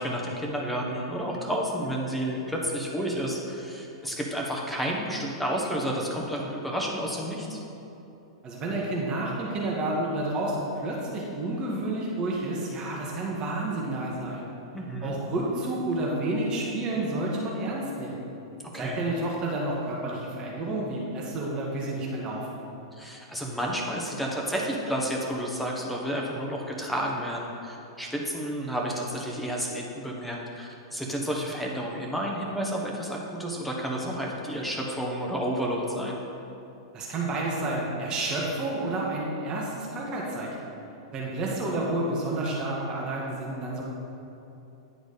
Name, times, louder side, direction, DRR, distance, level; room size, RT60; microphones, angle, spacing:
voice 1, 0.0-7.6 14.7-15.2 18.7-19.0 23.0-36.2, equal, ahead, -2 dB, 1.2 m, -31 dB
voice 2, 8.4-14.5 15.0-18.2 18.7-22.6 36.9-40.5 41.1-43.8, right 2 dB, 30° right, -4 dB, 1.4 m, -30 dB
10.0 x 4.0 x 5.2 m, 2.9 s
figure-of-eight pair, 100°, 3 cm